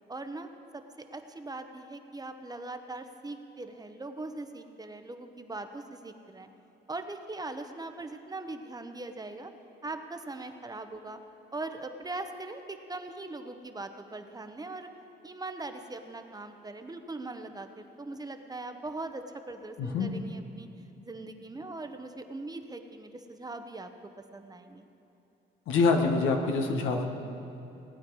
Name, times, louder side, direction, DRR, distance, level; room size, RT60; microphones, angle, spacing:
voice 1, 0.1-6.5 6.9-9.5 9.8-11.2 11.5-14.9 15.2-20.7 21.0-23.9 24.3-24.9, right 2 dB, 20° right, 7 dB, 0.9 m, -40 dB
voice 2, 19.8-20.1 25.7-27.0, left 4 dB, 85° left, 4 dB, 1.4 m, -25 dB
18.0 x 9.2 x 4.7 m, 2.9 s
cardioid pair, 90°, 20 cm